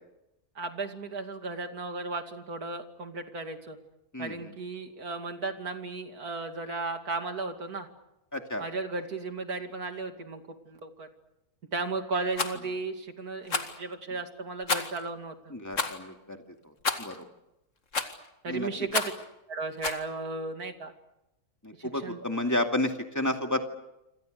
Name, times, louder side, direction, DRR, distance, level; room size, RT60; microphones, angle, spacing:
voice 1, 0.5-3.8 4.2-7.9 8.6-11.1 11.7-15.5 18.4-19.1 19.5-20.9 21.8-22.2, right 3 dB, 75° right, 6 dB, 3.0 m, -35 dB
voice 2, 4.1-4.5 8.3-8.7 15.5-16.4 17.0-17.2 18.5-18.7 21.6-23.6, left 1 dB, 10° left, 4 dB, 2.4 m, -31 dB
Rattle, 12.3-12.6 13.5-13.8 14.7-15.0 15.7-16.0 16.8-17.2 17.9-18.3 18.9-19.2 19.8-20.0, left 4 dB, 55° left, 2.3 m, -30 dB
27.5 x 27.0 x 6.7 m, 0.89 s
omnidirectional pair, 1.6 m